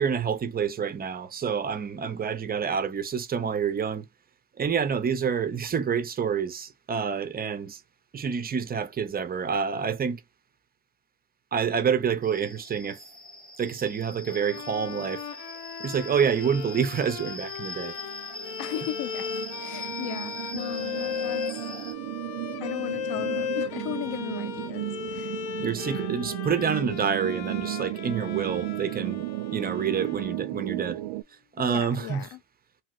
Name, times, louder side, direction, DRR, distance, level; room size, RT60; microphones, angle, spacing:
voice 1, 0.0-4.1 4.6-7.8 8.1-10.2 11.5-13.0 13.6-15.2 15.8-18.0 25.6-31.0 31.5-32.3, right 7 dB, 20° right, 0.4 m, -28 dB
sound 1, 12.2-21.9, left 1 dB, ahead, 0.9 m, -42 dB
Bowed string instrument, 14.3-30.8, left 8 dB, 70° left, 0.9 m, -37 dB
sound 2, 17.7-31.2, right 19 dB, 85° right, 0.5 m, -35 dB
voice 2, 18.6-19.3 19.6-21.4 22.6-25.3 31.6-32.4, left 13 dB, 55° left, 0.5 m, -36 dB
3.0 x 2.8 x 2.4 m
cardioid pair, 115°, 46 cm